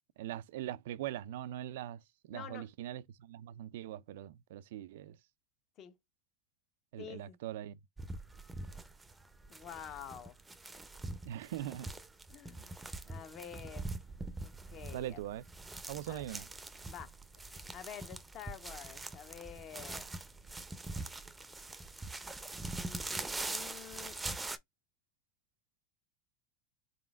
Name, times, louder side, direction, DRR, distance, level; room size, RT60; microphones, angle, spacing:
voice 1, 0.2-5.2 6.9-7.8 11.3-11.9 14.9-15.5 15.9-16.5, right 12 dB, 80° right, 0.3 m, -41 dB
voice 2, 2.3-2.7 5.8-6.0 7.0-7.4 9.5-10.4 12.3-12.7 13.1-13.9 14.4-15.2 16.1-16.3 16.9-17.1 17.7-20.1 22.8-24.2, left 9 dB, 40° left, 0.9 m, -48 dB
sound 1, 8.0-24.6, right 2 dB, 10° right, 0.6 m, -43 dB
4.1 x 3.7 x 2.4 m
supercardioid pair, 130°, 0 cm